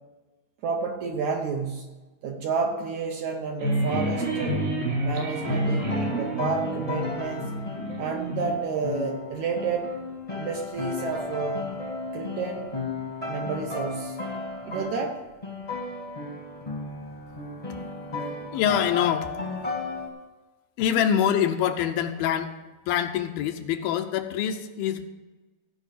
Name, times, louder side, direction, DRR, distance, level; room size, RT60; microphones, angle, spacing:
voice 1, 0.6-1.9 2.2-4.6 5.0-7.5 8.0-9.9 10.3-11.7 12.1-12.8 13.3-14.2 14.7-15.2, right 5 dB, 70° right, 2 dB, 1.9 m, -30 dB
sound 1, 3.6-8.6, right 1 dB, 85° right, 6.5 m, -28 dB
sound 2, 5.4-15.1 15.4-20.1, left 3 dB, 20° left, 0.9 m, -34 dB
voice 2, 18.5-19.3 20.8-22.5 22.9-25.1, left 9 dB, 80° left, 7 dB, 2.6 m, -25 dB
16.0 x 5.3 x 8.3 m, 1.2 s
omnidirectional pair, 4.3 m